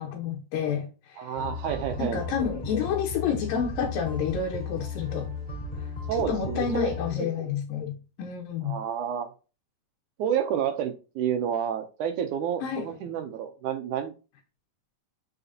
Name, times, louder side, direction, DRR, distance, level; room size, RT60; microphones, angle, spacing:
voice 1, 0.0-1.3 2.0-5.3 6.3-8.8 12.6-12.9, left 7 dB, 85° left, 2.8 m, -29 dB
voice 2, 1.2-2.2 6.1-6.9 7.2-7.5 8.6-9.3 10.2-14.1, right 9 dB, 75° right, 1.9 m, -30 dB
sound 1, 1.4-7.1, left 3 dB, 15° left, 3.0 m, -35 dB
8.0 x 5.0 x 2.8 m
omnidirectional pair, 4.0 m